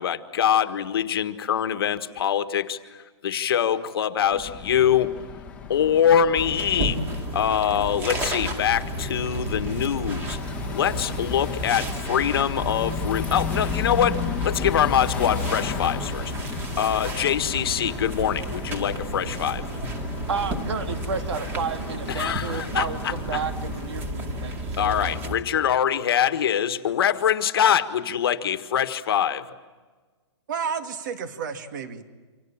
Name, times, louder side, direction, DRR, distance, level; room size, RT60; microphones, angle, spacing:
voice 1, 0.0-5.1 5.7-7.0 7.3-10.4 10.7-16.3 16.8-19.7 22.1-23.4 24.8-29.5, left 9 dB, 55° left, 9 dB, 1.6 m, -24 dB
sound 1, 4.3-23.9, left 6 dB, 10° left, 1.5 m, -35 dB
sound 2, 6.4-25.4, right 1 dB, 15° right, 2.4 m, -32 dB
voice 2, 20.3-25.1, right 5 dB, 70° right, 6 dB, 3.0 m, -31 dB
voice 3, 30.5-32.0, right 6 dB, 40° right, 7 dB, 2.2 m, -31 dB
28.5 x 25.5 x 7.3 m, 1.4 s
hypercardioid pair, 170°, 15 cm